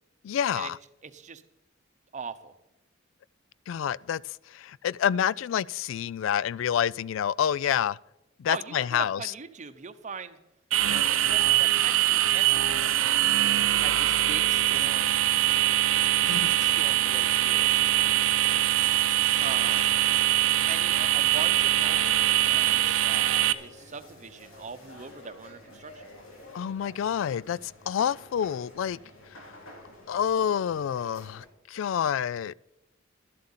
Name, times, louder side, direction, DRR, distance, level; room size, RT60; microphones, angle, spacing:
voice 1, 0.2-0.8 3.7-4.2 4.5-8.0 8.4-9.2 16.3-16.5 26.5-29.0 30.1-32.5, left 9 dB, 70° left, 0.3 m, -28 dB
voice 2, 1.0-1.4 2.1-2.5 8.5-10.4 10.8-13.2 13.8-15.2 16.2-17.7 19.4-19.9 20.7-26.1, right 5 dB, 35° right, 0.8 m, -40 dB
sound 1, 10.7-23.5, right 14 dB, 90° right, 0.7 m, -23 dB
sound 2, 12.2-31.5, left 1 dB, 90° left, 2.7 m, -50 dB
12.0 x 7.6 x 7.3 m
head